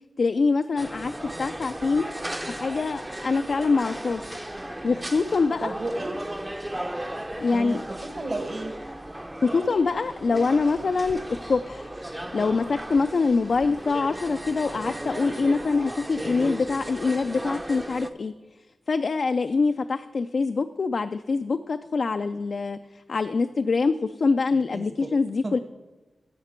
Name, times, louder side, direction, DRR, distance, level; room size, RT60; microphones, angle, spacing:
voice 1, 0.2-1.1 1.4-2.1 2.5-4.3 4.8-5.7 7.4-7.8 9.4-18.3 18.9-25.6, left 4 dB, 60° left, 9 dB, 0.3 m, -24 dB
sound 1, 0.8-18.1, right 1 dB, 15° right, 0.5 m, -35 dB
voice 2, 5.6-6.2 7.5-8.8 24.7-24.9 25.4-25.5, right 2 dB, 45° right, 7 dB, 1.1 m, -32 dB
16.0 x 5.9 x 4.4 m, 1.2 s
wide cardioid pair, 105°, 0 cm